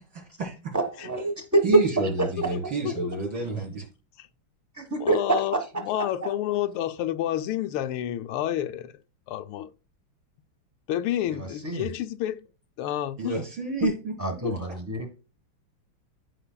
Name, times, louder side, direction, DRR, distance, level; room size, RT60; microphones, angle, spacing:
voice 1, 0.1-0.7 1.6-3.9 13.2-14.1, right 3 dB, 60° right, 3.9 m, -29 dB
voice 2, 0.7-1.8 2.2-2.3 4.8-5.6 11.4-11.9 14.2-15.1, right 2 dB, 10° right, 1.1 m, -25 dB
voice 3, 2.8-3.2 4.2-4.3 5.0-8.9 9.3-9.7 10.9-12.5 12.8-13.4 13.8-13.9 14.4-14.5, left 12 dB, 80° left, 1.5 m, -29 dB
14.5 x 5.4 x 2.2 m
omnidirectional pair, 2.4 m